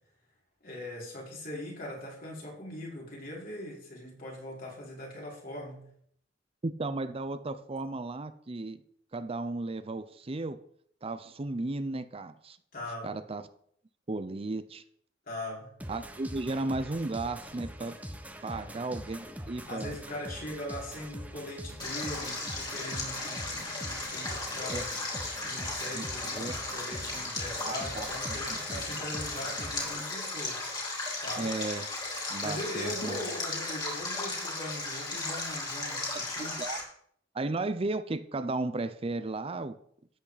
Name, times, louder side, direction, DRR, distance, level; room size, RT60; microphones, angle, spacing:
voice 1, 0.6-5.9 12.7-13.1 15.3-15.7 18.4-18.7 19.7-24.9 25.4-30.6 31.2-31.5 32.4-36.6, left 1 dB, 50° left, -4 dB, 4.7 m, -41 dB
voice 2, 6.6-8.8 9.1-10.6 11.0-12.6 13.0-13.4 14.1-14.8 15.9-18.0 18.4-20.0 24.7-24.8 25.9-26.5 27.6-28.8 31.4-31.9 32.3-33.3 36.4-36.8 37.3-39.8, right 2 dB, 30° right, 12 dB, 0.6 m, -35 dB
sound 1, 15.8-30.0, equal, 10° right, 1.0 m, -43 dB
Stream, 21.8-36.8, left 2 dB, 25° left, 3.6 m, -36 dB
13.5 x 8.7 x 4.0 m, 0.66 s
head